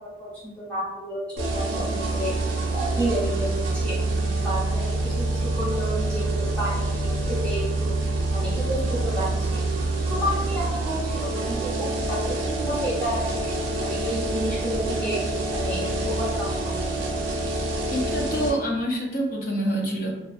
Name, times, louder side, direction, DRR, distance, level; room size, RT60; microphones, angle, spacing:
voice 1, 0.0-4.0 4.4-7.9 8.3-9.6 10.1-16.9, equal, 5° left, -10 dB, 0.9 m, -31 dB
sound 1, 1.4-18.5, right 2 dB, 80° right, 0.5 m, -26 dB
voice 2, 17.9-20.1, equal, 45° left, 0 dB, 0.4 m, -26 dB
2.3 x 2.2 x 2.5 m, 0.97 s
head